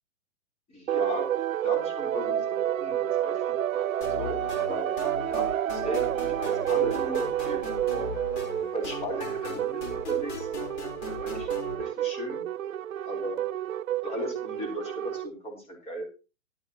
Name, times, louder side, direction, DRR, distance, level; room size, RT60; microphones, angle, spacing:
voice 1, 0.7-1.3 1.6-2.5 2.8-4.9 5.3-8.2 8.7-10.5 11.2-11.5 11.8-12.5 13.1-13.4 14.0-16.0, equal, 15° left, 2 dB, 3.6 m, -36 dB
sound 1, 0.9-15.3, right 12 dB, 75° right, 0.6 m, -30 dB
sound 2, 4.0-11.7, left 4 dB, 35° left, 4.0 m, -39 dB
14.5 x 12.0 x 2.9 m, 0.30 s
hypercardioid pair, 145°, 41 cm